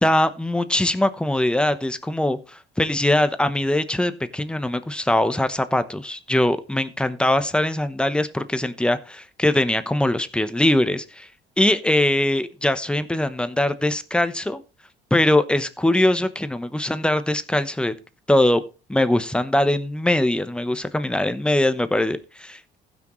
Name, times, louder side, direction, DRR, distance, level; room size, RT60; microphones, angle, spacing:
voice 1, 0.0-11.3 11.6-14.6 15.1-17.9 18.3-18.6 18.9-22.8, left 1 dB, 5° left, 11 dB, 0.9 m, -22 dB
16.0 x 6.2 x 3.1 m, 0.31 s
cardioid pair, 110°, 17 cm